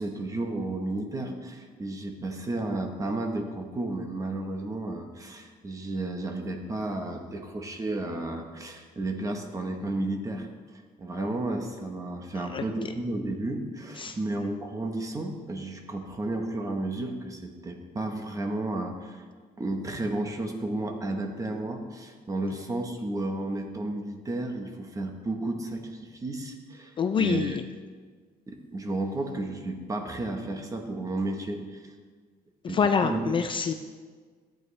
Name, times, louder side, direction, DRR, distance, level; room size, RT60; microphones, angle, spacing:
voice 1, 0.0-10.5 10.7-19.2 19.6-27.6 28.5-31.9 32.7-33.3, right 2 dB, 20° right, 4 dB, 1.0 m, -32 dB
voice 2, 27.0-27.6 32.6-33.7, left 6 dB, 30° left, 7 dB, 0.4 m, -26 dB
14.0 x 8.9 x 3.2 m, 1.6 s
cardioid pair, 160°, 16 cm